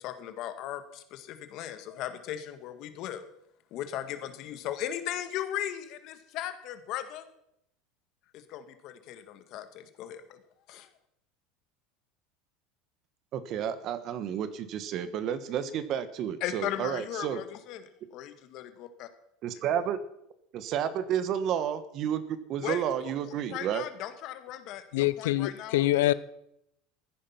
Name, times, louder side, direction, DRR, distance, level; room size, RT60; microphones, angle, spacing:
voice 1, 0.0-3.2 3.7-7.2 8.3-10.4 10.7-10.9 16.4-19.1 22.6-22.8 23.5-25.9, left 11 dB, 50° left, 1.8 m, -37 dB
voice 2, 13.3-17.4 19.4-20.0 20.5-23.8, right 9 dB, 45° right, 1.4 m, -31 dB
voice 3, 24.9-26.1, left 16 dB, 85° left, 0.6 m, -25 dB
14.5 x 10.0 x 5.8 m
supercardioid pair, 135°, 0 cm